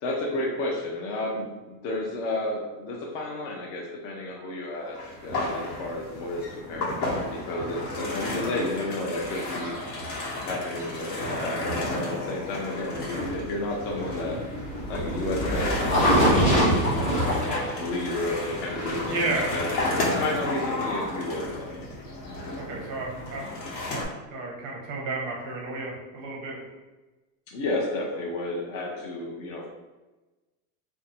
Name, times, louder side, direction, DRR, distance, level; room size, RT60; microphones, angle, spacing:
voice 1, 0.0-9.7 10.1-14.4 14.9-19.7 20.1-21.8 27.5-29.7, left 2 dB, 55° left, -2 dB, 0.6 m, -32 dB
sound 1, 4.9-24.1, left 2 dB, 80° left, 1.3 m, -33 dB
sound 2, 13.2-19.1, equal, 15° left, 0.9 m, -24 dB
voice 2, 19.1-19.6 22.5-23.5 23.9-24.0 24.3-26.6, right 2 dB, 30° right, -2 dB, 0.5 m, -32 dB
2.6 x 2.2 x 4.0 m, 1.2 s
cardioid pair, 175°, 48 cm